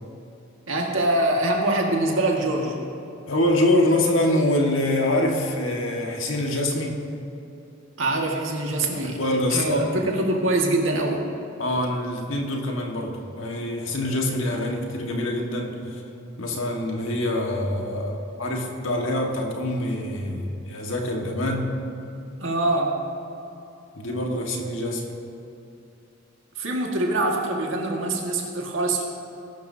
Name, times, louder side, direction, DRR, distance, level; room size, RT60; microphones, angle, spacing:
voice 1, 0.7-2.8 8.0-9.2 9.5-11.2 22.4-23.0 26.6-29.1, right 2 dB, 80° right, 0 dB, 1.9 m, -24 dB
voice 2, 3.3-7.0 8.9-9.9 11.6-16.0 16.4-21.8 24.0-25.1, left 1 dB, 90° left, 1 dB, 1.7 m, -25 dB
20.0 x 11.5 x 2.8 m, 2.8 s
head